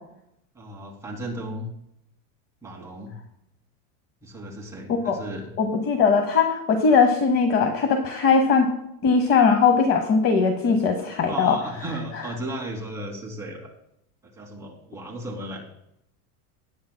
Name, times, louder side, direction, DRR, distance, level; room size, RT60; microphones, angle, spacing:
voice 1, 0.5-1.7 2.6-3.1 4.2-5.5 10.5-10.6 11.3-13.7 14.2-15.6, right 1 dB, 5° right, -3 dB, 2.4 m, -35 dB
voice 2, 5.6-8.7 9.0-11.6, left 5 dB, 30° left, 6 dB, 0.9 m, -20 dB
18.0 x 10.0 x 2.2 m, 0.78 s
supercardioid pair, 160°, 45 cm